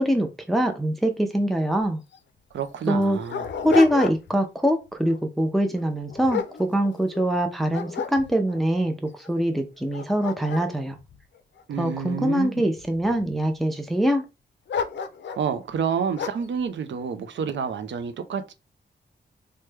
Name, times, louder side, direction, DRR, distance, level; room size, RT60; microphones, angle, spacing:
voice 1, 0.0-2.0 2.9-3.2 3.6-11.0 11.8-14.3, equal, ahead, 0.5 m, -23 dB
Dog, 1.8-1.9 2.1-2.2 2.8-4.5 4.9-5.2 5.8-7.3 7.7-8.6 9.2-9.3 9.8-12.1 12.8-13.4 14.7-15.5 16.2-16.5, left 6 dB, 75° left, 0.4 m, -32 dB
voice 2, 2.5-3.4 11.7-12.6 15.4-18.5, right 7 dB, 80° right, 0.5 m, -29 dB
3.1 x 2.2 x 3.2 m
wide cardioid pair, 95°, 19 cm